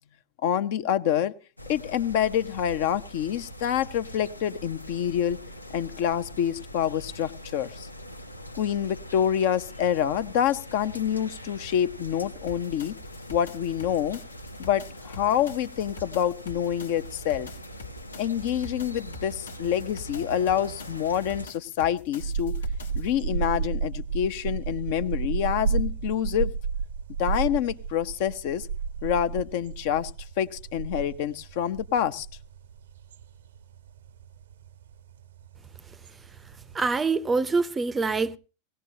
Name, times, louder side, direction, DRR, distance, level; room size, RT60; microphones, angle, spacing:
voice 1, 0.4-1.3 1.7-5.4 5.7-7.9 8.5-13.0 13.3-14.2 14.6-17.5 18.2-22.6 23.0-26.5 27.2-28.7 29.0-30.1 30.4-32.3, left 9 dB, 50° left, 0.7 m, -27 dB
sound 1, 1.6-21.5, equal, 85° left, 0.8 m, -42 dB
sound 2, 12.5-23.1, left 4 dB, 70° left, 1.5 m, -46 dB
sound 3, 22.2-37.0, right 5 dB, 65° right, 0.7 m, -32 dB
voice 2, 36.7-38.4, right 4 dB, 15° right, 0.6 m, -25 dB
19.0 x 17.0 x 2.8 m
figure-of-eight pair, 90°, 0 cm